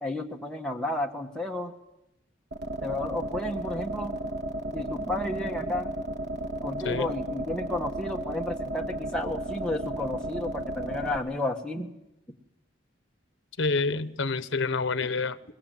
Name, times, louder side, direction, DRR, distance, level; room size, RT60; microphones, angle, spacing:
voice 1, 0.0-1.7 2.8-4.2 4.7-5.9 6.6-11.9, left 2 dB, 5° left, 0 dB, 1.6 m, -32 dB
sound 1, 2.5-11.2, right 1 dB, 55° right, 1.5 m, -34 dB
voice 2, 13.6-15.5, left 4 dB, 75° left, 14 dB, 1.0 m, -28 dB
22.0 x 21.5 x 7.7 m, 0.90 s
head